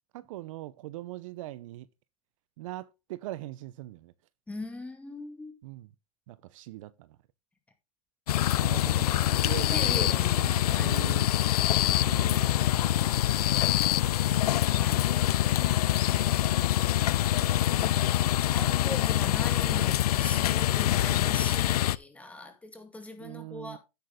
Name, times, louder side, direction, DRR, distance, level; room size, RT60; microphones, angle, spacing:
voice 1, 0.1-1.9 2.6-4.1 5.6-5.9 6.3-7.2 8.5-11.3 11.9-14.5 16.0-16.6 17.3-17.5 23.2-23.8, right 16 dB, 55° right, 0.8 m, -42 dB
voice 2, 4.5-5.5 9.6-11.0 14.7-15.0 17.6-23.8, left 2 dB, 5° left, 2.2 m, -41 dB
sound 1, 8.3-22.0, left 13 dB, 75° left, 0.5 m, -25 dB
9.6 x 8.6 x 3.7 m
hypercardioid pair, 130°, 20 cm